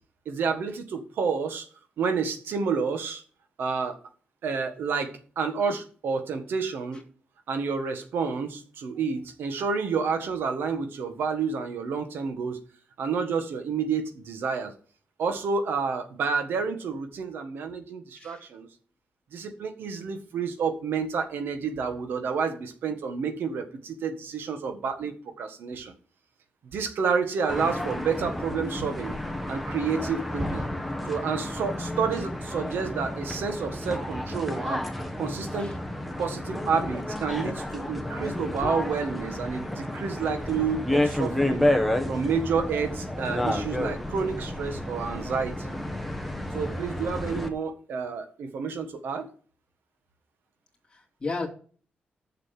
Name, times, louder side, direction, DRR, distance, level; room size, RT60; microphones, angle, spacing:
voice 1, 0.2-1.7 2.0-3.2 3.6-4.0 4.4-7.0 7.5-12.6 13.0-14.7 15.2-18.7 19.3-25.9 26.7-29.2 29.5-30.7 31.1-34.9 35.2-35.7 36.2-41.7 42.1-45.7 46.5-49.3, right 5 dB, 85° right, 8 dB, 1.5 m, -29 dB
voice 2, 18.1-18.5 35.6-35.8 38.6-38.7 50.9-51.5, left 3 dB, 25° left, -1 dB, 2.5 m, -34 dB
sound 1, 27.5-47.5, left 1 dB, ahead, 1.3 m, -31 dB
6.9 x 6.7 x 7.6 m, 0.44 s
cardioid pair, 110°, 4 cm